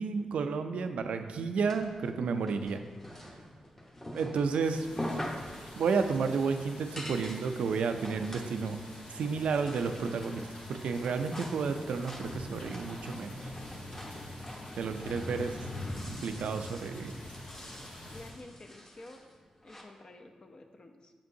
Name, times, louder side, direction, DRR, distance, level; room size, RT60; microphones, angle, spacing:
voice 1, 0.0-2.8 3.1-3.3 4.1-4.9 5.8-8.8 9.1-13.3 14.8-15.5 16.1-17.1, right 5 dB, 80° right, 7 dB, 0.4 m, -31 dB
sound 1, 1.3-19.8, left 1 dB, 20° left, 1.0 m, -46 dB
sound 2, 4.6-18.3, left 1 dB, 75° left, 1.3 m, -44 dB
voice 2, 15.0-15.4 18.1-19.2 19.6-21.1, left 2 dB, 45° left, 4 dB, 0.6 m, -51 dB
7.0 x 5.1 x 2.7 m, 1.5 s
supercardioid pair, 45°, 2 cm